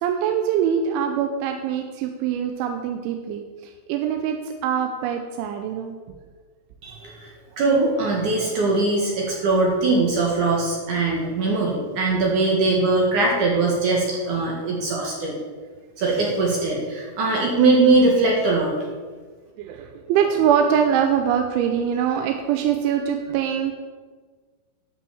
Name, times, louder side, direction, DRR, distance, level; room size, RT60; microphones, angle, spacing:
voice 1, 0.0-4.4 4.6-6.0 19.6-23.7, right 8 dB, 80° right, 5 dB, 2.9 m, -23 dB
voice 2, 6.8-7.3 7.6-15.4 16.0-18.7, right 3 dB, 60° right, -2 dB, 2.2 m, -21 dB
11.0 x 6.0 x 7.0 m, 1.5 s
omnidirectional pair, 5.8 m